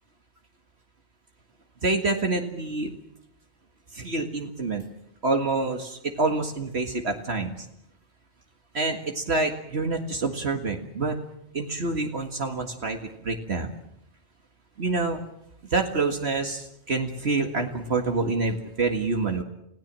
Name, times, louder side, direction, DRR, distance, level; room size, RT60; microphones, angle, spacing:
voice 1, 1.8-2.9 3.9-4.8 5.2-7.7 8.7-11.2 11.5-13.0 13.2-13.7 14.8-15.2 15.7-19.4, right 3 dB, 70° right, 4 dB, 2.1 m, -27 dB
30.0 x 16.5 x 7.5 m, 0.78 s
omnidirectional pair, 1.2 m